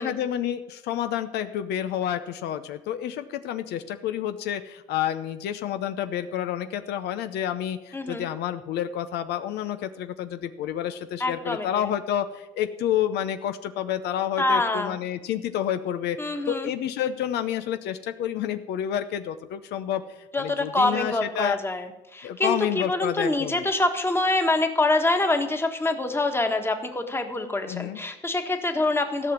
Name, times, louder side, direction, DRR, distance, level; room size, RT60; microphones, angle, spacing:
voice 1, 0.0-20.0 20.4-21.6 22.2-23.7 27.7-28.0, left 10 dB, 80° left, 10 dB, 0.7 m, -29 dB
voice 2, 7.9-8.3 11.2-11.9 14.4-15.0 16.2-16.7 20.3-29.3, left 2 dB, 15° left, 6 dB, 1.4 m, -25 dB
14.0 x 6.1 x 8.7 m, 0.98 s
cardioid pair, 110°, 17 cm